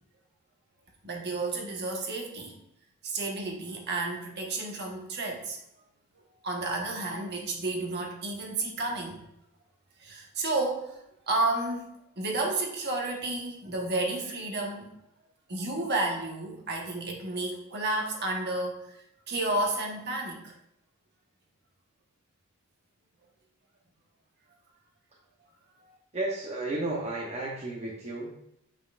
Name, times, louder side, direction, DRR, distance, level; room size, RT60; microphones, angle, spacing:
voice 1, 1.0-2.6 3.0-5.6 6.4-9.2 10.0-11.0 11.3-11.9 12.2-14.9 15.5-19.0 19.3-20.5 25.8-26.0, right 2 dB, 50° right, 0 dB, 1.2 m, -31 dB
voice 2, 26.1-28.3, right 2 dB, 30° right, -3 dB, 0.8 m, -33 dB
7.2 x 5.4 x 2.5 m, 0.79 s
head